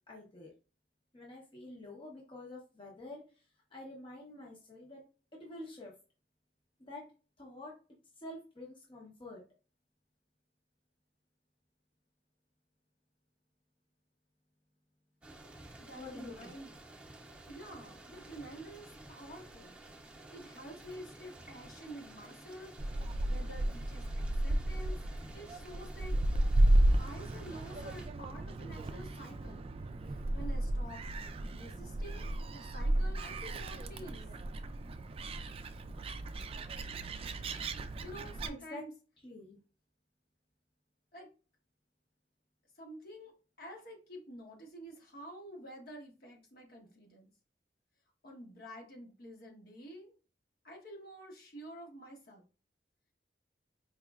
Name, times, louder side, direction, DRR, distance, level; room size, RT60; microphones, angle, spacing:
voice 1, 0.1-0.5 1.1-3.5 3.7-5.0 5.3-5.9 6.9-7.0 7.4-7.7 8.2-9.4 15.9-16.6 38.5-38.8 39.2-39.6, left 2 dB, 30° left, -2 dB, 0.8 m, -48 dB
sound 1, 15.2-28.1, right 1 dB, 5° right, 0.8 m, -52 dB
voice 2, 15.8-16.7 17.5-19.8 20.3-22.7 23.2-24.0 24.4-25.0 25.3-26.2 26.8-29.7 30.1-31.1 31.5-34.2 38.0-38.9 41.1-41.3 42.8-43.3 43.6-47.3 48.2-50.1 50.6-52.4, right 1 dB, 55° left, 0 dB, 1.3 m, -49 dB
Gull seagull, 22.8-38.5, right 1 dB, 35° right, 0.3 m, -33 dB
4.7 x 3.1 x 2.3 m, 0.35 s
head